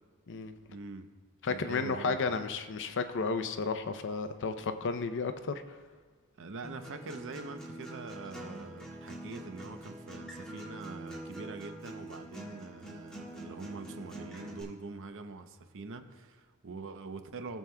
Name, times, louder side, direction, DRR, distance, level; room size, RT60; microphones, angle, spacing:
voice 1, 0.7-1.1 1.5-2.4 6.4-17.6, right 3 dB, 60° right, 8 dB, 0.7 m, -44 dB
voice 2, 1.4-5.8, left 4 dB, 55° left, 9 dB, 0.6 m, -33 dB
Acoustic guitar, 6.6-14.6, right 1 dB, 5° left, 2.2 m, -45 dB
19.0 x 7.3 x 2.3 m, 1.5 s
head